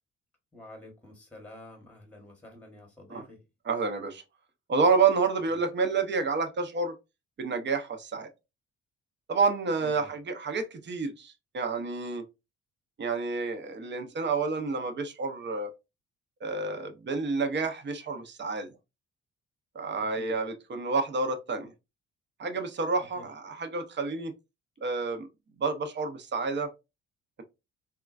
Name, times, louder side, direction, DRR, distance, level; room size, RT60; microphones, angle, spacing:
voice 1, 0.5-3.4 5.4-5.6 9.8-10.1 19.9-20.4 23.1-23.3, left 1 dB, 5° left, 1.0 m, -49 dB
voice 2, 3.7-4.2 4.7-6.9 7.4-8.3 9.3-12.2 13.0-15.7 16.4-18.7 19.7-21.7 22.4-24.3 24.8-25.3 25.6-26.7, right 4 dB, 35° right, 0.7 m, -29 dB
3.6 x 2.3 x 2.4 m
cardioid pair, 90°, 30 cm